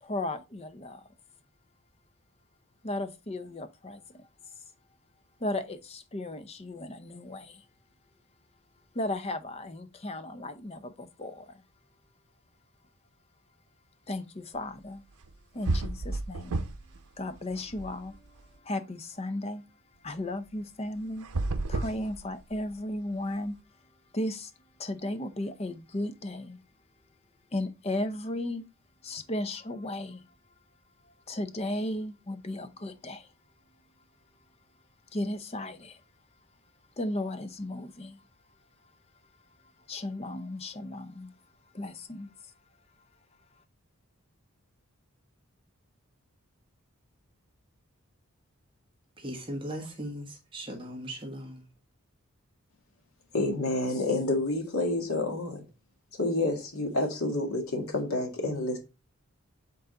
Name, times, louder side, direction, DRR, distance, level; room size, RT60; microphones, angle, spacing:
voice 1, 0.0-1.0 2.8-4.3 5.4-7.6 8.9-11.5 14.1-15.0 15.5-16.6 17.2-18.3 18.6-19.6 20.0-21.3 21.7-23.6 24.1-24.5 24.8-26.6 27.5-28.6 29.0-30.2 31.3-33.3 35.1-36.0 37.0-38.2 39.9-41.3 41.7-42.3, left 1 dB, 30° left, 0.6 m, -35 dB
sound 1, 15.2-15.3 15.6-17.0 17.3-18.4 21.2-22.7, right 2 dB, 85° right, 0.7 m, -32 dB
voice 2, 49.2-51.7, right 1 dB, 25° right, 1.3 m, -38 dB
voice 3, 53.3-55.6 56.2-58.8, left 2 dB, 75° left, 1.9 m, -29 dB
8.0 x 4.0 x 3.8 m
head